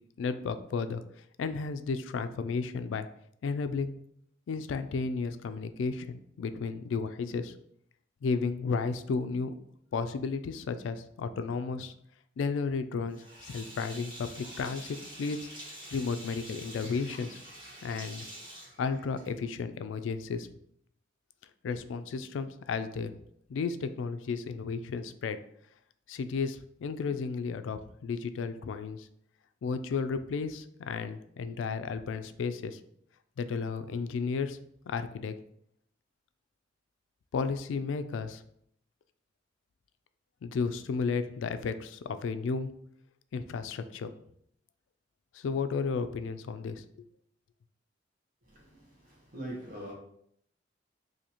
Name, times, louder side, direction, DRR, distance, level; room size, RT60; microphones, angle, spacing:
voice 1, 0.2-1.0 1.4-3.1 3.4-4.0 4.5-7.5 8.2-9.5 9.9-11.9 12.4-15.5 15.9-17.4 17.8-18.3 18.8-20.5 21.6-23.1 23.5-25.4 26.1-29.1 29.6-32.8 33.4-34.6 34.9-35.3 37.3-38.4 40.4-42.7 43.3-44.1 45.3-46.8, left 5 dB, 80° left, 0.3 m, -33 dB
Sink (filling or washing), 13.1-19.5, right 1 dB, 30° right, 1.2 m, -47 dB
voice 2, 48.4-49.9, right 1 dB, 45° right, 1.0 m, -43 dB
2.8 x 2.7 x 4.1 m
head